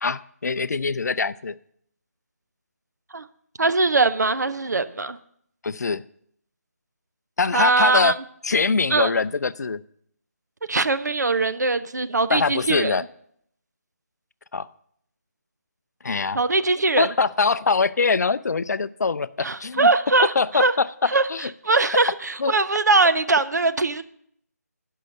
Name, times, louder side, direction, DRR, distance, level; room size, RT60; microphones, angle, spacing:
voice 1, 0.0-1.6 5.6-6.0 7.4-8.2 8.4-9.8 12.3-13.0 14.5-14.7 16.0-16.4 17.0-19.9 20.2-21.5 22.4-22.5, left 4 dB, 75° left, 17 dB, 0.4 m, -23 dB
voice 2, 3.6-5.2 7.5-8.1 8.9-9.1 10.7-13.0 16.3-17.1 19.4-20.7 21.1-21.3 21.6-24.0, right 3 dB, 85° right, 12 dB, 0.6 m, -21 dB
12.5 x 5.6 x 5.4 m, 0.68 s
figure-of-eight pair, 160°, 9 cm